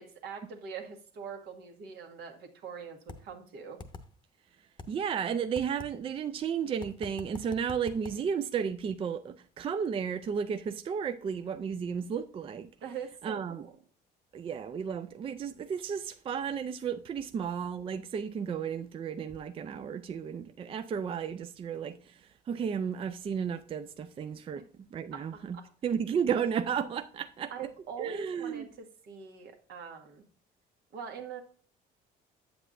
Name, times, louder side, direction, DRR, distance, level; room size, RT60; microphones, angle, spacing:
voice 1, 0.0-3.8 12.8-13.7 25.1-25.7 27.5-30.3 30.9-31.4, right 6 dB, 75° right, 1.5 m, -43 dB
sound 1, 3.1-3.2 3.8-4.0 4.8-4.9 5.6-5.9 6.8-8.2, left 4 dB, 25° left, 0.8 m, -43 dB
voice 2, 4.9-12.7 13.2-13.6 14.3-24.6 24.9-25.6 25.8-27.5 28.0-28.7, right 7 dB, 35° right, 0.4 m, -33 dB
8.0 x 7.7 x 2.5 m
cardioid pair, 110°, 17 cm